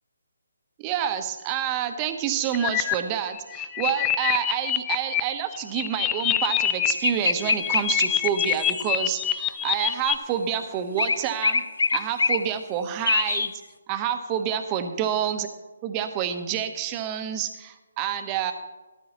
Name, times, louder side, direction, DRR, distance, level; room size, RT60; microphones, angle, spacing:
voice 1, 0.8-11.6 11.9-13.5 13.9-15.5 15.8-18.5, right 9 dB, 25° right, 9 dB, 1.0 m, -28 dB
sound 1, 2.5-2.9 3.3-5.2 5.5-6.9 7.2-10.2, left 12 dB, 15° left, 0.4 m, -25 dB
sound 2, 7.0-8.9 11.0-12.4 13.1-13.5, left 4 dB, 75° left, 0.7 m, -24 dB
13.5 x 12.5 x 3.0 m, 1.1 s
figure-of-eight pair, 150°, 0 cm